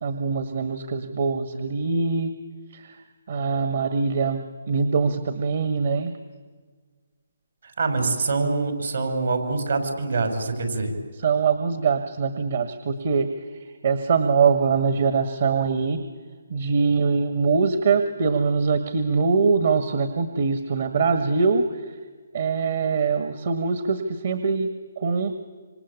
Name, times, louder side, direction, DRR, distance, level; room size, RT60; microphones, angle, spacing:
voice 1, 0.0-2.3 2.7-3.0 3.3-6.1 11.2-13.3 13.8-16.0 16.5-21.6 22.3-25.4, right 5 dB, 60° right, 9 dB, 1.7 m, -23 dB
voice 2, 7.8-10.9, right 3 dB, 75° right, 5 dB, 5.8 m, -25 dB
27.0 x 26.0 x 8.5 m, 1.5 s
hypercardioid pair, 150°, 0 cm